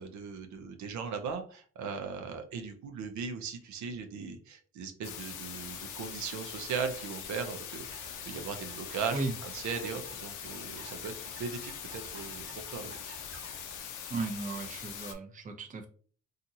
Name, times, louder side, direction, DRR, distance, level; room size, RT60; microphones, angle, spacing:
voice 1, 0.0-11.1 11.4-13.0, right 5 dB, 70° right, 6 dB, 0.6 m, -38 dB
sound 1, 5.0-15.1, left 8 dB, 90° left, 0.6 m, -42 dB
sound 2, 7.8-13.8, right 3 dB, 45° right, 1.0 m, -54 dB
voice 2, 14.1-15.9, right 3 dB, 25° right, 4 dB, 0.6 m, -35 dB
2.8 x 2.4 x 2.6 m, 0.42 s
cardioid pair, 90°, 30 cm